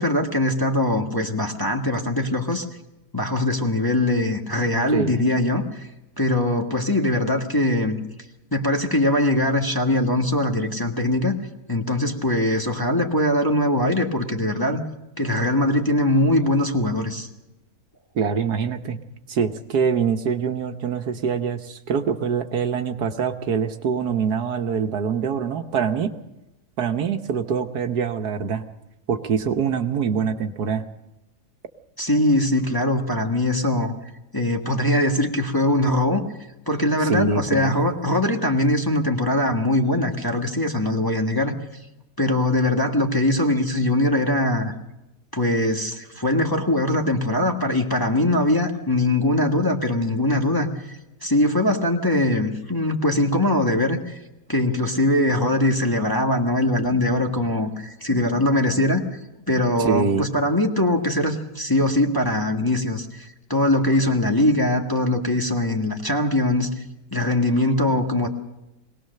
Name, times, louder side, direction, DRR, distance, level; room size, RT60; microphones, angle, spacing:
voice 1, 0.0-2.6 3.1-5.9 6.2-8.0 8.5-11.3 11.7-14.8 15.2-17.3 32.0-33.9 34.3-36.2 36.7-41.5 42.2-44.7 45.3-54.2 54.5-59.0 59.5-66.7 67.1-68.3, left 1 dB, 15° left, 1 dB, 1.5 m, -21 dB
voice 2, 4.9-5.2 18.1-19.0 19.3-26.1 26.8-28.6 29.1-30.8 37.0-37.7 59.8-60.2, right 6 dB, 70° right, 7 dB, 1.5 m, -24 dB
22.0 x 18.5 x 6.6 m, 0.94 s
omnidirectional pair, 1.8 m